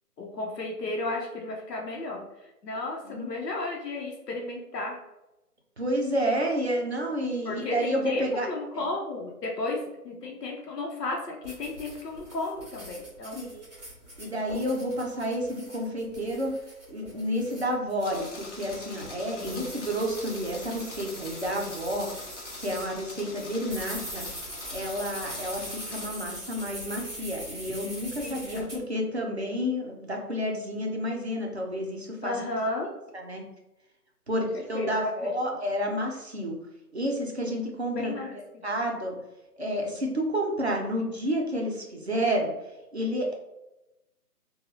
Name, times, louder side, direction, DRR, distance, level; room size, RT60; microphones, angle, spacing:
voice 1, 0.2-2.2 2.6-5.0 7.4-9.8 10.0-13.4 19.3-19.7 28.2-28.7 32.2-32.9 34.3-34.4 34.7-35.3 37.9-38.6, left 2 dB, 85° left, 0 dB, 0.8 m, -33 dB
voice 2, 5.8-8.5 8.7-8.8 13.3-13.7 14.2-16.5 16.9-22.1 22.6-24.3 24.7-32.4 33.1-33.4 34.3-36.6 36.9-39.2 39.6-42.5 42.9-43.3, equal, 45° right, 0 dB, 0.5 m, -30 dB
sound 1, 11.4-22.9 23.4-28.8, equal, 25° right, 0.9 m, -42 dB
sound 2, 18.0-26.1, left 2 dB, 50° left, 0.9 m, -43 dB
2.8 x 2.2 x 2.7 m, 0.95 s
hypercardioid pair, 170°, 47 cm